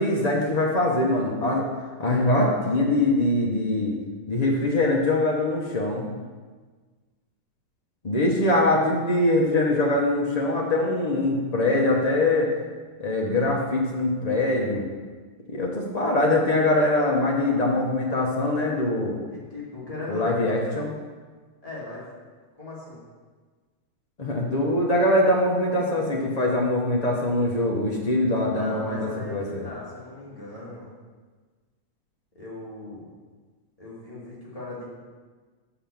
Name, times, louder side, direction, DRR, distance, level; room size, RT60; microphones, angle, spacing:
voice 1, 0.0-1.7 2.0-4.0 4.3-6.1 8.0-12.5 13.0-14.8 15.5-19.2 20.1-20.9 24.2-29.0 29.3-29.7, left 1 dB, 80° left, -2 dB, 0.3 m, -23 dB
voice 2, 19.3-20.3 21.6-22.1 22.6-23.0 28.5-30.9 32.3-33.1 33.8-34.9, left 2 dB, 15° left, -7 dB, 2.2 m, -38 dB
5.8 x 5.7 x 7.0 m, 1.4 s
omnidirectional pair, 2.2 m